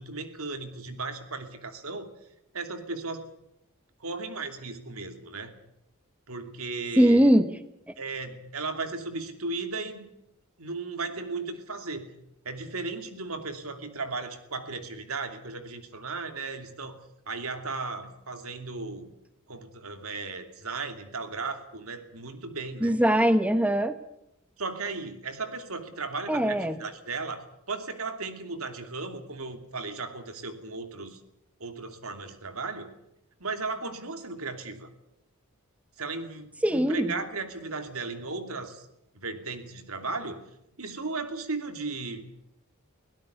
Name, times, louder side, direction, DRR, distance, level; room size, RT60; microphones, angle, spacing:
voice 1, 0.0-2.1 2.5-3.3 4.0-5.5 6.3-7.3 8.0-10.1 10.6-12.1 12.4-19.1 19.5-23.0 24.6-31.2 31.6-32.9 33.4-34.9 36.0-38.9 39.1-40.4 40.8-42.2, right 3 dB, 75° right, 7 dB, 2.8 m, -36 dB
voice 2, 7.0-7.5 7.9-8.0 22.8-24.0 26.3-26.8 36.6-37.1, equal, 5° right, 10 dB, 1.0 m, -21 dB
23.5 x 17.0 x 8.2 m, 0.81 s
head